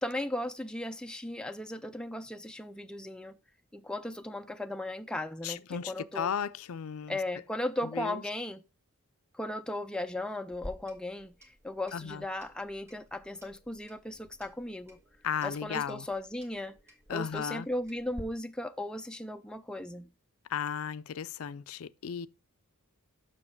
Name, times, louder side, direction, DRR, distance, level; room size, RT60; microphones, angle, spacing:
voice 1, 0.0-3.4 3.7-6.3 7.1-8.6 9.3-15.0 15.4-16.8 17.1-20.1, left 1 dB, 5° left, 0.3 m, -36 dB
voice 2, 5.4-7.2 7.9-8.2 11.9-12.2 15.2-16.1 17.1-17.7 20.5-22.3, left 7 dB, 70° left, 0.4 m, -35 dB
Clock, 10.5-18.2, left 1 dB, 10° right, 1.3 m, -52 dB
7.5 x 6.0 x 4.5 m
head